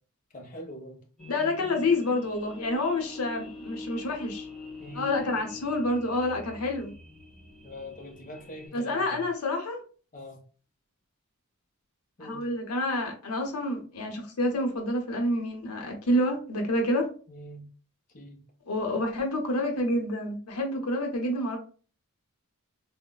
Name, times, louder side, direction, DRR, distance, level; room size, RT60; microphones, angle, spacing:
voice 1, 0.3-1.0 4.8-5.1 7.6-9.2 10.1-10.4 12.2-12.5 17.3-17.7 18.1-18.4, equal, 35° left, 1 dB, 0.6 m, -43 dB
sound 1, 1.2-8.7, left 3 dB, 5° left, 0.8 m, -44 dB
voice 2, 1.3-4.5 4.9-6.9 8.7-9.8 12.2-17.1 18.7-21.6, left 1 dB, 80° left, 3 dB, 0.7 m, -28 dB
3.8 x 2.0 x 2.2 m, 0.38 s
head